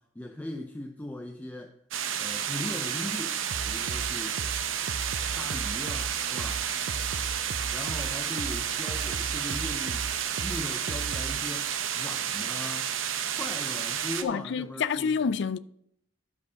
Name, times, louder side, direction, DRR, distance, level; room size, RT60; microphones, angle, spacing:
voice 1, 0.0-1.8 2.2-3.4 3.6-4.4 5.3-6.7 7.7-10.1 10.4-11.7 11.9-12.9 13.3-15.1, left 1 dB, 10° left, 0.5 m, -39 dB
sound 1, 1.9-14.2, right 9 dB, 75° right, 0.8 m, -31 dB
sound 2, 3.5-11.4, right 4 dB, 60° right, 0.5 m, -36 dB
voice 2, 14.2-15.6, left 6 dB, 60° left, 0.4 m, -28 dB
10.5 x 4.8 x 6.5 m
head